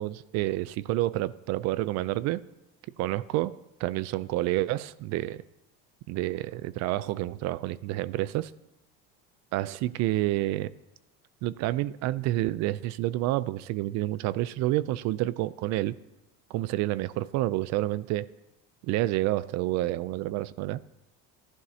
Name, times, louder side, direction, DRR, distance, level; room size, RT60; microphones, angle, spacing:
voice 1, 0.0-2.4 3.0-5.4 6.1-8.5 9.5-10.7 11.4-15.9 16.5-18.3 18.8-20.8, right 16 dB, 60° right, 0.5 m, -29 dB
14.5 x 11.5 x 2.8 m
cardioid pair, 130°, 31 cm